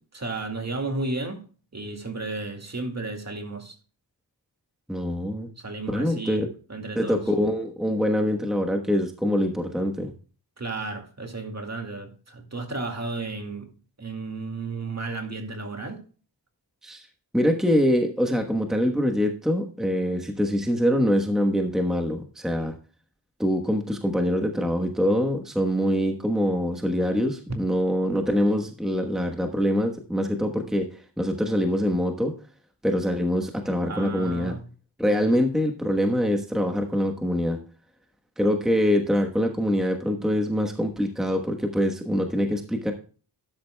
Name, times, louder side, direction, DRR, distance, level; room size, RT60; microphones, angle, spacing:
voice 1, 0.1-1.4 1.7-3.8 5.6-7.2 10.6-13.7 14.0-16.0 33.8-34.6 35.1-35.2, right 3 dB, 40° right, 2.2 m, -33 dB
voice 2, 4.9-5.5 5.9-6.5 7.0-10.1 16.8-17.1 17.3-22.8 23.4-30.9 31.2-32.3 32.8-34.5 35.0-37.6 38.4-42.9, equal, ahead, 1.2 m, -24 dB
12.5 x 10.5 x 2.2 m
wide cardioid pair, 100°, 42 cm